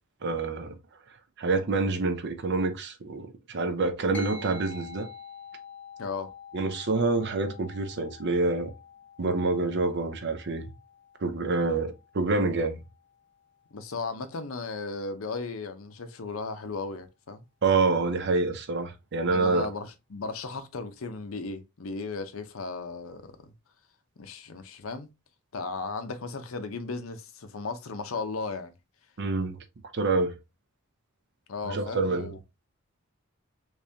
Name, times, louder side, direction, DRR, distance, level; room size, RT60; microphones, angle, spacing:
voice 1, 0.2-0.8 1.4-5.1 6.5-8.7 9.2-10.6 11.2-12.8 17.6-19.7 29.2-29.6 29.9-30.3 31.7-32.3, right 3 dB, 55° right, 0.6 m, -27 dB
sound 1, 4.1-13.9, left 5 dB, 10° left, 0.8 m, -48 dB
voice 2, 6.0-6.3 13.7-17.5 19.3-23.5 24.2-25.1 25.5-28.7 31.5-32.4, left 4 dB, 70° left, 0.6 m, -36 dB
3.5 x 3.2 x 2.7 m
head